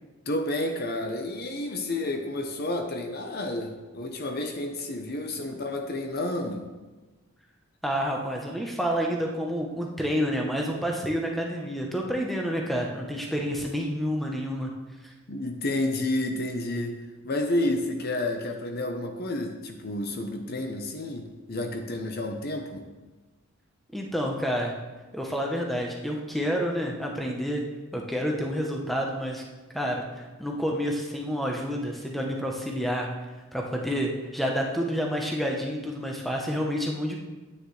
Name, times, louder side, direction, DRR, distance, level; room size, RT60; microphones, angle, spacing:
voice 1, 0.3-6.7 15.3-17.0 17.2-22.8, left 1 dB, 45° left, 5 dB, 0.8 m, -30 dB
voice 2, 7.8-14.7 15.0-15.1 23.9-24.7 25.1-27.6 27.9-29.4 29.7-33.1 33.5-37.2, equal, ahead, 0 dB, 0.9 m, -29 dB
9.7 x 9.1 x 3.2 m, 1.2 s
head